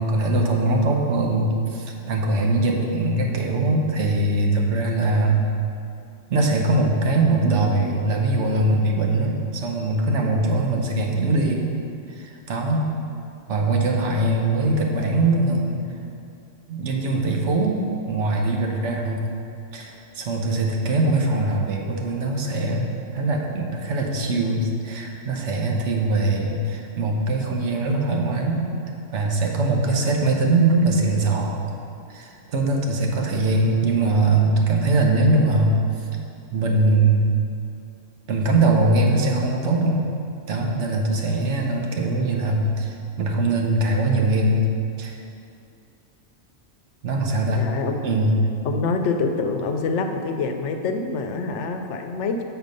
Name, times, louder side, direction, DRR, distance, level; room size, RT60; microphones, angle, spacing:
voice 1, 0.0-5.5 6.3-11.7 12.1-13.0 13.5-15.8 16.7-19.3 19.7-28.7 29.1-31.6 32.1-36.1 36.5-37.3 38.3-40.0 40.5-44.7 45.0-45.2 47.0-47.7 48.0-48.4, right 2 dB, 85° right, 1 dB, 1.2 m, -22 dB
voice 2, 41.3-41.6 47.6-48.0 48.6-52.4, left 4 dB, 85° left, 5 dB, 0.9 m, -26 dB
7.0 x 4.3 x 5.3 m, 2.6 s
omnidirectional pair, 1.2 m